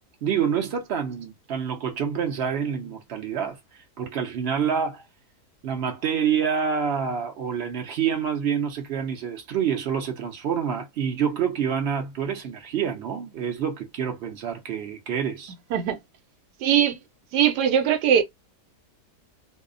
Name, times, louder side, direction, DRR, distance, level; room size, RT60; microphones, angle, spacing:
voice 1, 0.2-3.6 4.0-5.0 5.6-15.5, right 7 dB, 55° right, 0.7 m, -27 dB
voice 2, 16.6-17.0 17.3-18.2, right 9 dB, 85° right, 1.2 m, -20 dB
2.7 x 2.0 x 2.4 m
omnidirectional pair, 1.7 m